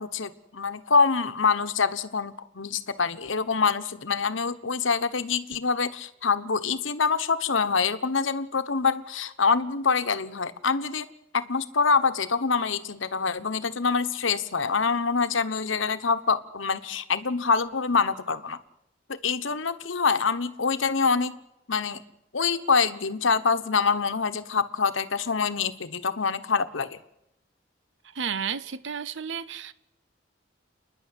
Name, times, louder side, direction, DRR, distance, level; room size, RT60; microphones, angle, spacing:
voice 1, 0.0-11.1 11.3-18.6 19.1-21.3 21.7-22.0 22.3-27.0, left 5 dB, 85° left, 1.2 m, -25 dB
voice 2, 28.1-29.7, right 7 dB, 75° right, 0.8 m, -32 dB
29.0 x 10.5 x 9.9 m
head